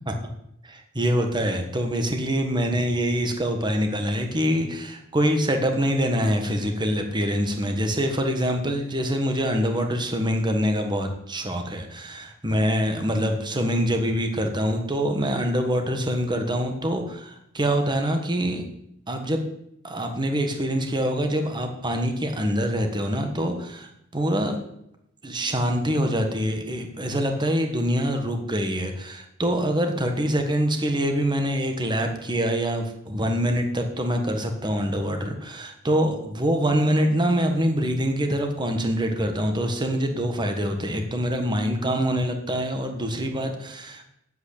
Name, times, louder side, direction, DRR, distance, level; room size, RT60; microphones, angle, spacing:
voice 1, 0.6-18.6 19.1-19.4 19.8-24.5 25.2-44.0, equal, 20° right, 5 dB, 1.5 m, -25 dB
9.3 x 7.9 x 8.7 m, 0.78 s
head